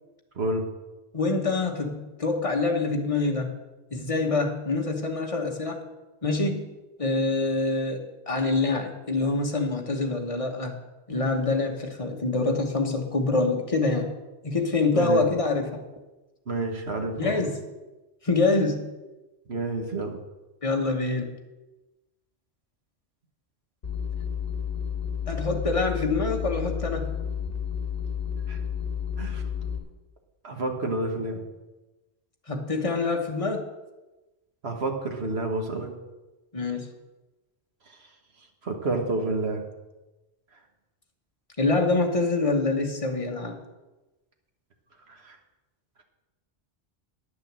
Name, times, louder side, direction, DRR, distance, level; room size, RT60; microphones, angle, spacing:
voice 1, 1.1-3.5 3.9-5.8 6.2-6.7 7.0-10.8 11.1-14.1 14.4-15.9 17.1-17.6 18.2-18.9 20.6-21.3 25.3-27.1 32.5-33.7 36.5-36.9 41.6-43.6, left 3 dB, 30° left, 2 dB, 1.3 m, -25 dB
voice 2, 14.9-15.3 16.5-17.4 19.5-20.2 28.5-28.6 29.2-29.4 30.4-31.4 34.6-36.0 37.9-38.0 38.6-39.6 45.1-45.4, right 2 dB, 70° right, 3 dB, 1.7 m, -29 dB
sound 1, 23.8-29.8, left 7 dB, 55° left, 1.6 m, -31 dB
10.0 x 6.6 x 7.4 m, 1.1 s
omnidirectional pair, 1.1 m